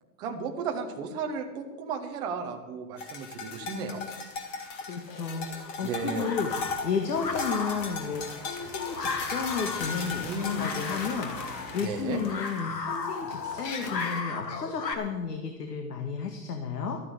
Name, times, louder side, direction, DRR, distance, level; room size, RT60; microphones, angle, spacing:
voice 1, 0.2-4.0 5.8-6.3 10.2-10.6 11.8-12.2, right 4 dB, 10° right, 4 dB, 0.5 m, -34 dB
sound 1, 3.0-14.2, left 4 dB, 45° left, 2.8 m, -37 dB
voice 2, 4.5-10.3 10.6-17.0, left 5 dB, 70° left, 5 dB, 1.9 m, -33 dB
sound 2, 5.1-14.9, left 4 dB, 85° left, 2.0 m, -37 dB
sound 3, 6.5-13.8, right 2 dB, 35° right, 1.3 m, -50 dB
12.5 x 9.5 x 7.9 m, 1.2 s
hypercardioid pair, 140°, 49 cm